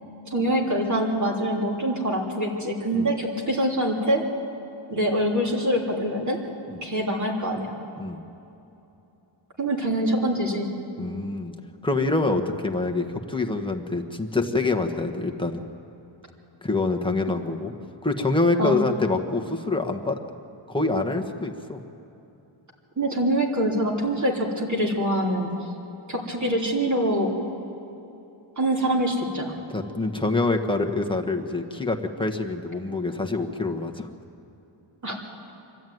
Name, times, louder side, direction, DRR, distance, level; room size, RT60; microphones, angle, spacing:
voice 1, 0.3-4.2 4.9-6.4 6.8-7.8 9.6-10.7 18.6-18.8 23.0-25.5 26.1-27.3 28.6-29.5 35.0-35.1, right 1 dB, 35° right, -1 dB, 3.3 m, -24 dB
voice 2, 11.0-11.5 11.8-15.6 16.6-17.7 18.0-20.2 20.7-21.8 29.7-34.1, left 3 dB, 10° left, 3 dB, 1.3 m, -26 dB
24.5 x 12.5 x 9.3 m, 2.9 s
wide cardioid pair, 130°, 49 cm